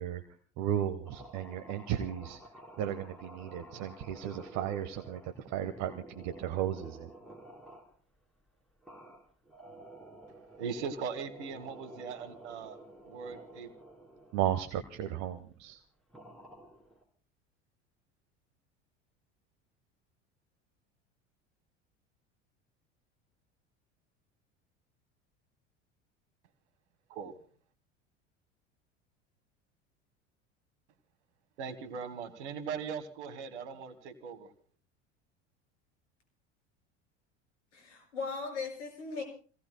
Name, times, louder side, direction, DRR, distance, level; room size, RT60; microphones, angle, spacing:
voice 1, 0.0-2.4 2.8-7.1 14.3-15.8, right 10 dB, 50° right, 1.3 m, -35 dB
sound 1, 1.0-7.9 8.8-14.5 15.0-15.2 16.1-17.0, right 1 dB, ahead, 4.4 m, -51 dB
voice 2, 10.6-12.8 13.0-13.7 27.1-27.4 31.6-34.5, right 6 dB, 70° right, 1.8 m, -39 dB
voice 3, 37.7-39.2, left 4 dB, 75° left, 5.4 m, -38 dB
29.0 x 17.5 x 2.2 m
hypercardioid pair, 75°, 36 cm